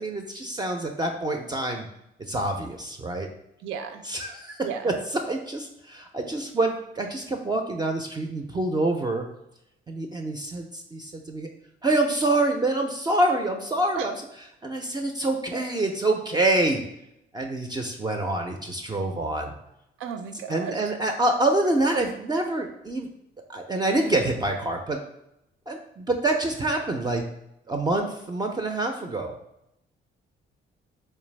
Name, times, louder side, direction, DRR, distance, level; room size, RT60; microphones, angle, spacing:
voice 1, 0.0-1.9 2.3-3.3 4.1-5.0 5.3-9.3 9.9-11.5 11.8-14.2 14.6-16.8 17.3-19.6 20.5-23.1 23.5-25.0 25.7-27.2 27.7-29.3, right 2 dB, 20° right, 3 dB, 0.4 m, -26 dB
voice 2, 3.6-4.0 4.6-4.9 14.0-14.1 20.0-20.9, right 7 dB, 90° right, 7 dB, 0.4 m, -34 dB
3.3 x 3.3 x 3.1 m, 0.83 s
cardioid pair, 90°, 20 cm